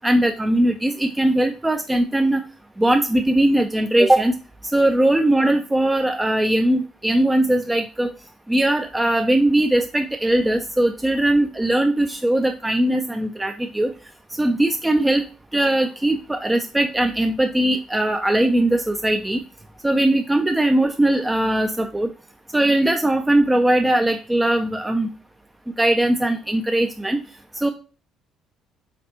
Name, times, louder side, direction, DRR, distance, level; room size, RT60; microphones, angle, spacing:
voice 1, 0.0-2.4 2.8-4.3 4.7-8.1 8.5-13.9 14.4-15.2 15.5-19.4 19.8-22.1 22.5-25.1 25.8-27.2 27.6-27.7, right 1 dB, 10° right, 6 dB, 0.4 m, -20 dB
4.1 x 4.1 x 2.8 m, 0.36 s
figure-of-eight pair, 50°, 0 cm